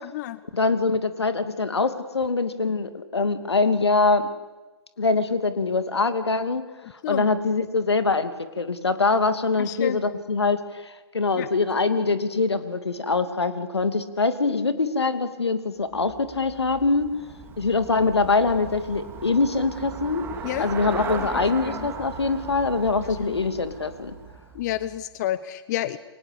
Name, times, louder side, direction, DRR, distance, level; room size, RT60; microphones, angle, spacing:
voice 1, 0.0-0.4 7.0-7.3 9.6-10.0 11.4-11.5 20.4-20.7 21.6-21.9 23.0-23.4 24.5-26.0, left 13 dB, 40° left, 15 dB, 1.0 m, -30 dB
voice 2, 0.5-4.3 5.0-6.6 7.1-17.1 17.6-20.2 20.6-24.1, left 3 dB, 85° left, 11 dB, 2.8 m, -23 dB
Traffic noise roadway noise / Bicycle, 15.9-25.1, right 5 dB, 15° right, 3.1 m, -38 dB
29.0 x 24.0 x 8.5 m, 1.1 s
hypercardioid pair, 125°, 13 cm